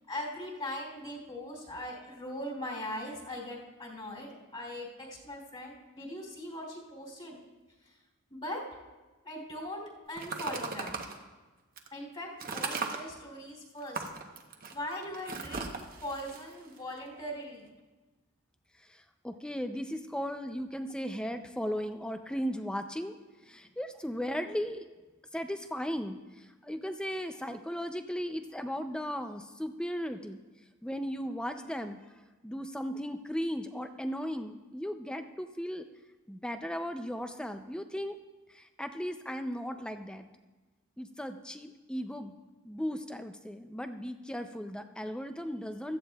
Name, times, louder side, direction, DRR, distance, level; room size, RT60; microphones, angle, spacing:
voice 1, 0.1-7.4 7.8-7.9 8.3-8.6 9.2-9.8 10.1-11.0 11.9-14.0 14.7-17.7, left 1 dB, 25° left, -3 dB, 2.7 m, -40 dB
sound 1, 10.2-11.2 11.8-11.9 12.4-13.0 13.8-17.3, right 4 dB, 40° right, 0.9 m, -37 dB
voice 2, 18.8-23.2 23.4-24.9 25.3-30.4 30.8-32.0 32.4-35.9 36.3-38.2 38.5-40.3 41.0-42.4 42.6-46.0, equal, 5° left, 8 dB, 0.4 m, -36 dB
16.0 x 13.0 x 2.3 m, 1.2 s
head